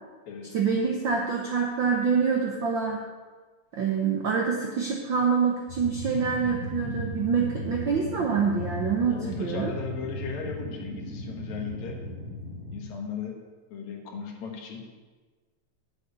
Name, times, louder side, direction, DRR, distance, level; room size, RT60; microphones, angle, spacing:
voice 1, 0.5-3.0 3.7-9.7, right 6 dB, 70° right, 1 dB, 1.1 m, -26 dB
sound 1, 5.7-12.8, left 1 dB, 25° right, 2.0 m, -36 dB
voice 2, 9.1-12.0 12.7-13.4 13.7-14.8, left 6 dB, 75° left, 1 dB, 2.7 m, -37 dB
7.8 x 6.8 x 8.1 m, 1.4 s
omnidirectional pair, 3.4 m